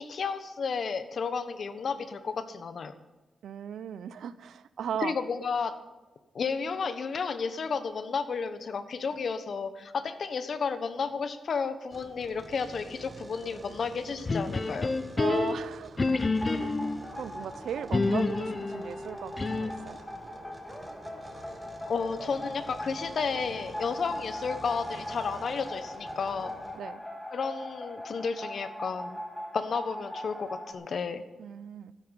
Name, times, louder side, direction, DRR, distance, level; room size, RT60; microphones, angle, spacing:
voice 1, 0.0-2.9 5.0-5.7 6.3-14.9 21.8-26.5 27.3-29.2 29.5-31.2, left 5 dB, 65° left, 11 dB, 1.2 m, -32 dB
voice 2, 3.4-5.2 15.2-16.2 16.6-16.8 17.1-20.0 26.7-27.0 31.4-31.9, right 8 dB, 85° right, 15 dB, 0.6 m, -37 dB
sound 1, 11.9-26.8, right 2 dB, 30° right, 1.6 m, -49 dB
sound 2, 14.3-17.0 17.9-19.9, left 3 dB, 35° left, 0.9 m, -28 dB
sound 3, 16.1-30.7, left 1 dB, 10° left, 3.3 m, -41 dB
13.0 x 10.0 x 7.0 m, 1.1 s
cardioid pair, 70°, 0 cm